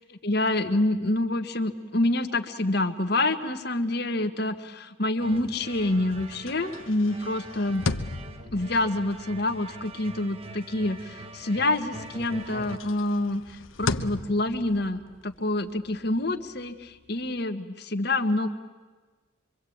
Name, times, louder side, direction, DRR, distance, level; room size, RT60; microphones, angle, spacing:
voice 1, 0.2-7.8 8.5-18.5, left 2 dB, 55° left, 7 dB, 1.5 m, -27 dB
sound 1, 5.2-11.7 12.0-17.4, left 3 dB, 85° left, 1.0 m, -38 dB
sound 2, 5.2-12.8, right 2 dB, 30° right, 1.1 m, -44 dB
25.0 x 24.5 x 8.7 m, 1.3 s
head